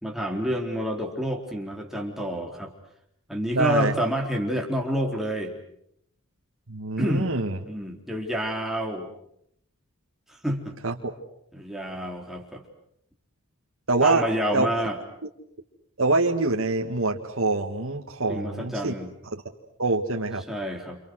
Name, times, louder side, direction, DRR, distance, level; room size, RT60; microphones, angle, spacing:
voice 1, 0.0-2.7 3.3-5.5 7.0-7.3 7.7-9.1 10.3-10.8 11.5-12.6 14.0-15.0 18.3-19.1 20.5-21.0, equal, ahead, 1 dB, 3.9 m, -28 dB
voice 2, 3.5-3.9 6.7-7.6 10.8-11.1 13.9-14.2 14.5-14.7 16.0-18.9 19.8-20.4, right 2 dB, 65° right, 1 dB, 2.0 m, -25 dB
29.5 x 28.5 x 6.4 m, 0.73 s
head